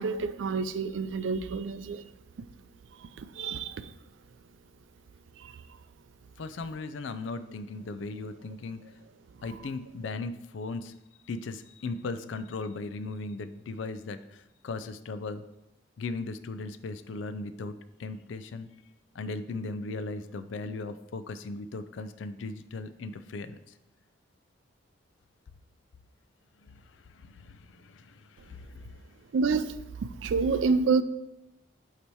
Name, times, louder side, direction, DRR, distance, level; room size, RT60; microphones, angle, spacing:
voice 1, 0.0-2.0 3.2-3.9 5.4-5.5 29.3-29.7 30.0-31.0, right 4 dB, 75° right, 0.4 m, -28 dB
voice 2, 6.4-8.8 9.4-11.0 11.3-15.4 16.0-18.7 19.1-23.6 26.6-29.0, left 3 dB, 75° left, 0.4 m, -37 dB
8.4 x 2.9 x 4.6 m
head